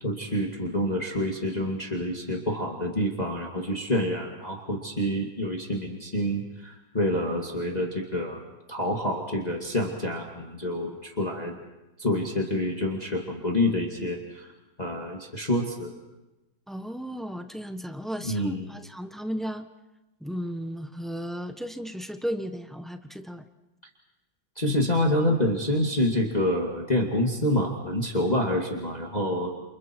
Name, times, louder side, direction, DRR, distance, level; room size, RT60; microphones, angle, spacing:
voice 1, 0.0-8.4 8.7-11.6 12.0-14.5 14.8-15.9 18.2-18.7 24.6-29.5, left 1 dB, 20° left, 0 dB, 2.3 m, -27 dB
voice 2, 16.7-19.7 20.2-23.4, equal, ahead, 7 dB, 0.9 m, -34 dB
29.5 x 29.0 x 4.6 m, 1.0 s
omnidirectional pair, 2.1 m